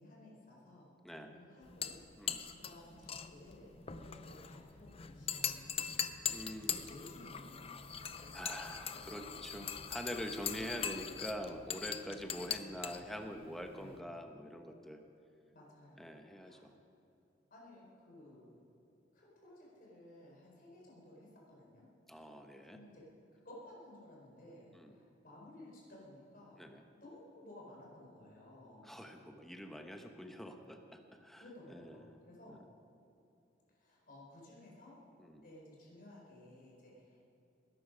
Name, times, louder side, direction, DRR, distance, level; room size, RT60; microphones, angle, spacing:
voice 1, 0.0-2.0 2.6-6.0 6.6-9.7 10.9-11.0 12.8-13.0 13.7-14.0 15.5-16.7 17.5-18.7 19.1-21.8 22.7-23.0 23.4-26.6 27.0-28.9 31.4-32.6 33.7-35.0 35.4-37.2, left 1 dB, 50° left, -4 dB, 4.5 m, -56 dB
voice 2, 1.0-1.3 2.2-2.4 6.3-6.9 8.3-15.0 16.0-16.7 22.1-22.8 24.7-25.0 26.6-26.8 28.8-31.4 31.7-32.0 32.5-32.6 35.2-35.4, equal, ahead, 4 dB, 1.1 m, -45 dB
sound 1, 1.6-14.0, left 8 dB, 35° left, 0.6 m, -42 dB
20.5 x 11.5 x 5.2 m, 2.8 s
head